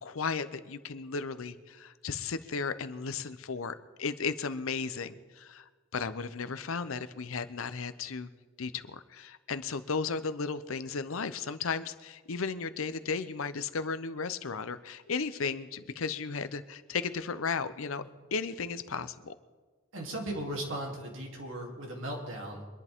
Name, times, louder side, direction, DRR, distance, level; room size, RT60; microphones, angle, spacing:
voice 1, 0.0-8.3 8.6-18.0 18.3-19.3, left 5 dB, 80° left, 13 dB, 0.7 m, -35 dB
voice 2, 19.9-22.7, right 1 dB, 70° right, 0 dB, 3.0 m, -37 dB
24.5 x 11.0 x 3.6 m, 1.4 s
head